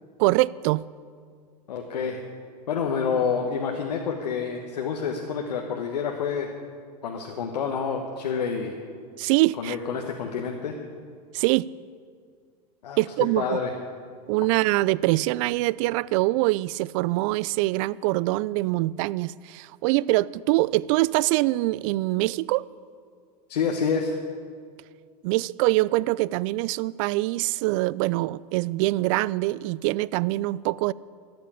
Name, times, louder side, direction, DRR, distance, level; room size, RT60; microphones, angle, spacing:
voice 1, 0.2-0.8 9.2-9.8 11.3-11.7 13.0-13.6 14.3-22.6 25.2-30.9, right 19 dB, 55° right, 22 dB, 0.4 m, -24 dB
voice 2, 1.7-2.2 2.7-6.5 7.0-8.7 9.6-10.8 12.8-13.7 23.5-24.2, left 6 dB, 80° left, 2 dB, 1.4 m, -28 dB
13.5 x 8.7 x 8.5 m, 2.1 s
hypercardioid pair, 100°, 21 cm